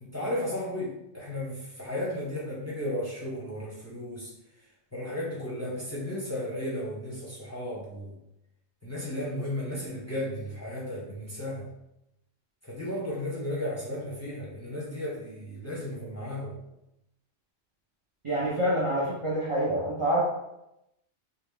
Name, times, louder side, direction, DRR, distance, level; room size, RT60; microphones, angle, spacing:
voice 1, 0.0-4.3 4.9-8.1 8.8-11.7 12.7-16.6, left 1 dB, 15° left, -6 dB, 0.7 m, -34 dB
voice 2, 18.2-20.2, right 1 dB, 35° right, -6 dB, 0.6 m, -27 dB
3.2 x 2.3 x 3.6 m, 0.87 s
omnidirectional pair, 1.2 m